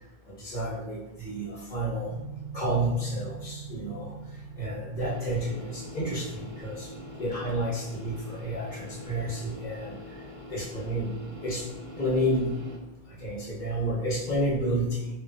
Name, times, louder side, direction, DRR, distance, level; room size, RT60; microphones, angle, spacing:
voice 1, 0.4-2.1 2.5-4.1 4.6-6.9 7.2-10.0 10.5-11.1 11.4-11.7 12.0-12.5 13.2-15.1, right 1 dB, 50° left, -6 dB, 0.9 m, -30 dB
sound 1, 2.1-11.8, right 5 dB, 85° right, 0.8 m, -45 dB
sound 2, 5.0-12.8, left 1 dB, 45° right, 0.5 m, -44 dB
3.1 x 2.2 x 2.6 m, 1.0 s
omnidirectional pair, 1.1 m